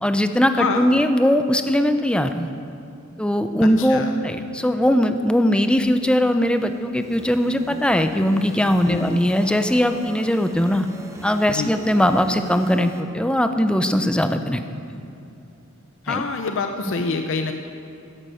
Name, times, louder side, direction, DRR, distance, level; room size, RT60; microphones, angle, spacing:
voice 1, 0.0-2.5 3.2-10.9 11.2-14.6 14.9-15.0 16.1-16.2, equal, 5° left, 8 dB, 0.5 m, -20 dB
voice 2, 0.6-0.9 3.8-4.1 8.9-9.1 11.5-11.7 16.0-17.5, left 4 dB, 60° left, 5 dB, 0.6 m, -26 dB
sound 1, 5.8-13.0, right 1 dB, 15° right, 0.9 m, -42 dB
10.5 x 10.5 x 7.7 m, 2.7 s
head